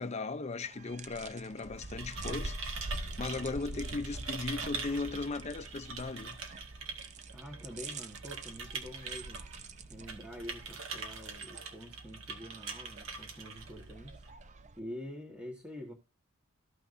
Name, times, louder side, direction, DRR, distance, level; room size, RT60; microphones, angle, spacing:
voice 1, 0.0-2.6 3.2-6.4, left 3 dB, 35° left, 0.6 m, -37 dB
sound 1, 0.6-14.8, right 2 dB, 35° right, 0.7 m, -46 dB
sound 2, 1.6-14.3, right 4 dB, 75° right, 1.9 m, -44 dB
sound 3, 2.8-5.9, left 2 dB, 85° left, 0.8 m, -58 dB
voice 2, 7.3-9.5 9.9-14.3 14.8-15.9, left 1 dB, 10° right, 1.4 m, -46 dB
14.0 x 5.8 x 2.6 m
head